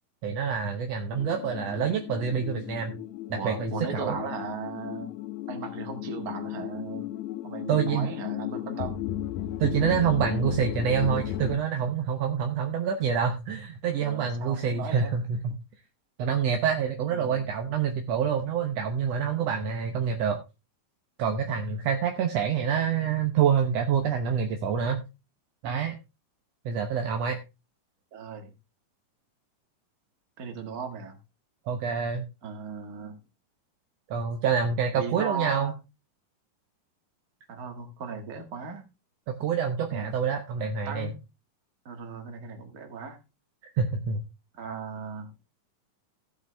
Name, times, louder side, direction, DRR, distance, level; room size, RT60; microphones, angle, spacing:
voice 1, 0.2-3.0 3.3-4.2 7.7-8.1 9.6-15.6 16.2-20.4 21.2-25.0 25.6-26.0 26.7-27.4 31.7-32.3 34.1-35.7 39.3-41.1 43.8-44.2, right 7 dB, 65° right, 5 dB, 1.8 m, -27 dB
sound 1, 1.1-11.6, left 13 dB, 75° left, 1.8 m, -35 dB
voice 2, 3.3-5.1 5.5-7.1 7.4-9.0 14.0-15.1 17.1-17.4 28.1-28.5 30.4-31.2 32.4-33.2 34.9-35.7 37.5-38.8 39.9-40.1 40.9-41.1 41.9-43.2 44.5-45.3, right 5 dB, 35° right, 5 dB, 1.7 m, -37 dB
15.0 x 8.1 x 3.4 m, 0.26 s
omnidirectional pair, 3.8 m